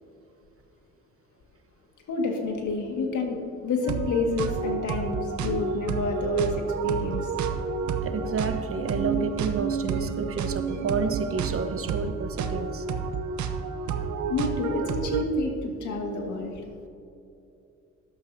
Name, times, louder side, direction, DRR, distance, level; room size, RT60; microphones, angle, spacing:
voice 1, 2.1-7.3 14.3-16.7, left 3 dB, 75° left, 2 dB, 2.0 m, -29 dB
sound 1, 3.8-15.2, right 5 dB, 70° right, 0.8 m, -30 dB
voice 2, 8.0-12.9, right 4 dB, 50° right, 7 dB, 1.0 m, -30 dB
14.0 x 11.5 x 2.8 m, 2.6 s
cardioid pair, 90°, 30 cm